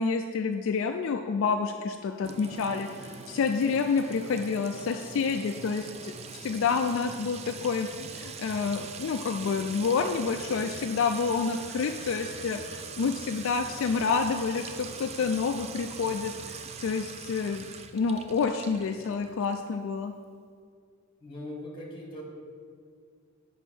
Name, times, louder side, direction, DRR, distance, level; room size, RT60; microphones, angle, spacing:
voice 1, 0.0-17.6 17.9-20.1, left 5 dB, 65° left, 5 dB, 0.3 m, -29 dB
Sink (filling or washing) / Trickle dribble / Fill (with liquid), 2.2-19.7, right 5 dB, 30° right, 0.4 m, -42 dB
voice 2, 21.2-22.2, left 1 dB, 25° left, -2 dB, 1.8 m, -40 dB
8.0 x 5.4 x 4.3 m, 2.1 s
head